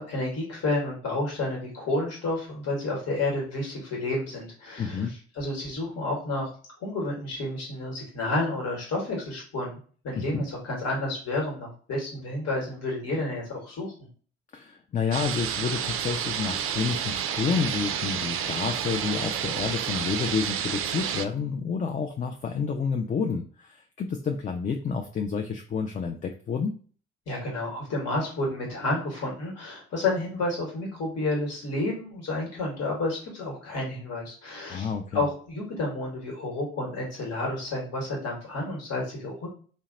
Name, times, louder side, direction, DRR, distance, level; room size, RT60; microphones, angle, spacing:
voice 1, 0.0-6.5 6.8-9.8 10.0-14.1 27.3-39.5, left 2 dB, 50° left, -3 dB, 1.4 m, -30 dB
voice 2, 4.8-5.1 10.2-10.4 14.5-26.8 34.7-35.2, left 5 dB, 25° left, 4 dB, 0.4 m, -29 dB
sound 1, 15.1-21.2, right 9 dB, 40° right, 0.4 m, -30 dB
2.8 x 2.1 x 3.8 m, 0.42 s
figure-of-eight pair, 45°, 34 cm